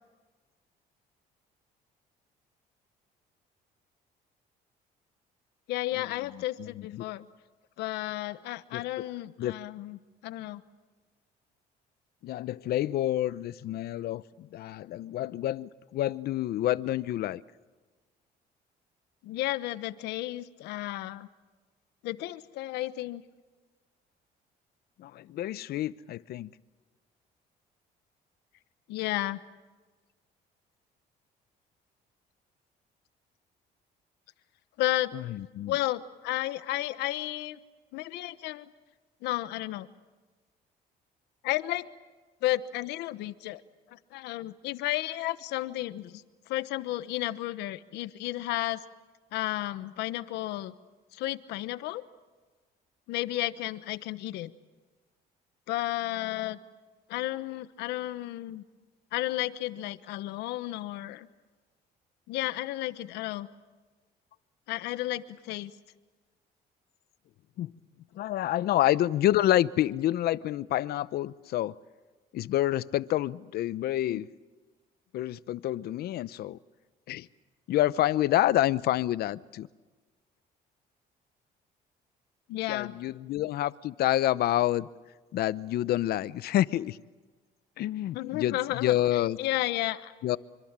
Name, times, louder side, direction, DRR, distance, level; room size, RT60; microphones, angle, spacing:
voice 1, 5.7-7.3 7.8-10.0 10.2-10.6 19.2-21.3 22.0-23.2 28.9-29.4 34.8-35.1 35.7-37.6 37.9-38.7 39.2-39.9 41.4-41.9 42.4-43.6 43.9-48.8 49.3-50.7 51.1-52.0 53.1-54.5 55.7-56.6 57.1-58.6 59.1-61.3 62.3-63.5 64.7-65.7 74.1-74.2 82.5-82.9 88.1-90.1, left 16 dB, 90° left, 14 dB, 1.1 m, -32 dB
voice 2, 6.3-7.0 8.7-8.8 9.4-9.5 12.2-17.4 25.0-26.5 35.1-35.7 67.6-67.7 68.2-71.8 72.3-74.3 75.1-76.6 77.1-77.3 77.7-79.7 82.7-84.9 85.3-87.0 87.8-89.4 90.2-90.4, left 13 dB, 65° left, 18 dB, 0.8 m, -28 dB
26.0 x 25.0 x 7.5 m, 1.3 s
cardioid pair, 110°, 17 cm